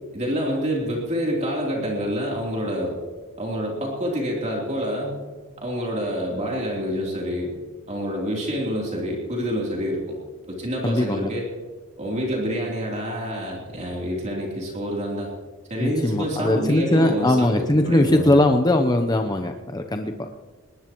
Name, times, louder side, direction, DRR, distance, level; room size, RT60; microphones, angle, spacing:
voice 1, 0.1-3.0 3.4-5.2 5.6-7.5 7.9-10.2 10.5-11.5 12.0-15.3 15.7-18.4, equal, 35° right, -3 dB, 3.3 m, -27 dB
voice 2, 10.8-11.3 15.8-20.3, left 1 dB, 20° left, 5 dB, 0.7 m, -20 dB
20.5 x 19.5 x 3.1 m, 1.4 s
head